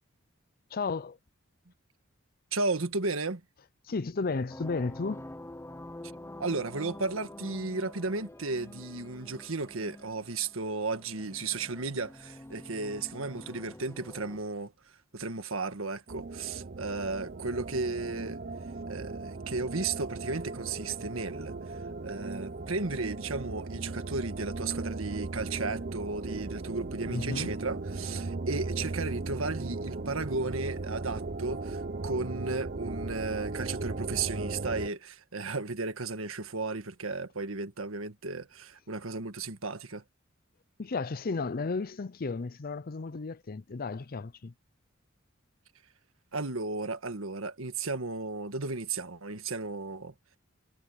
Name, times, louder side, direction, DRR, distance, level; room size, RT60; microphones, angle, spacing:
voice 1, 0.7-1.2 3.8-5.2 27.1-27.5 40.8-44.5, left 4 dB, 45° left, 0.6 m, -33 dB
voice 2, 2.5-3.4 6.4-18.4 18.9-40.0 46.3-50.1, right 3 dB, 90° right, 1.6 m, -34 dB
sound 1, 4.5-14.4, left 1 dB, 15° left, 0.7 m, -47 dB
sound 2, 16.1-34.9, right 3 dB, 45° right, 0.8 m, -37 dB
head